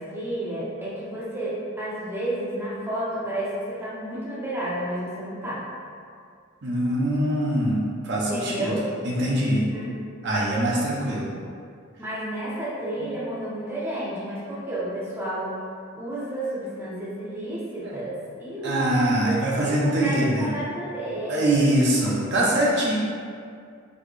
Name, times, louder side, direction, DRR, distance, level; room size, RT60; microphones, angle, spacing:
voice 1, 0.0-5.6 8.2-8.9 9.5-10.0 12.0-15.5 15.9-21.7 22.6-23.0, right 1 dB, 10° right, -8 dB, 0.6 m, -31 dB
voice 2, 6.6-8.7 9.0-9.6 10.2-11.3 18.6-20.4 21.3-23.0, right 1 dB, 55° right, -5 dB, 0.7 m, -23 dB
4.0 x 2.7 x 3.2 m, 2.2 s
head